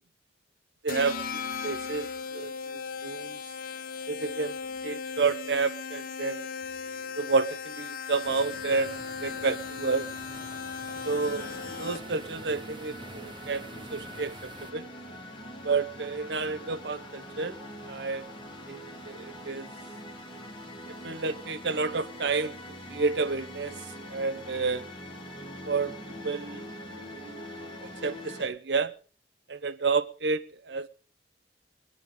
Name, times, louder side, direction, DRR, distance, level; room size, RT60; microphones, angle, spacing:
voice 1, 0.8-3.4 4.1-4.6 4.8-6.4 7.2-10.1 11.0-14.9 15.6-17.6 17.8-18.3 18.7-18.8 19.1-19.7 20.9-22.6 22.9-23.8 24.1-24.9 25.6-26.6 26.9-27.4 27.8-28.9 29.5-30.9, right 4 dB, 65° right, 0.9 m, -30 dB
sound 1, 0.9-12.3, left 5 dB, 50° left, 1.0 m, -37 dB
sound 2, 8.2-14.7, right 2 dB, 25° right, 0.8 m, -47 dB
sound 3, 11.1-28.4, equal, 30° left, 3.9 m, -43 dB
23.5 x 9.0 x 5.2 m
head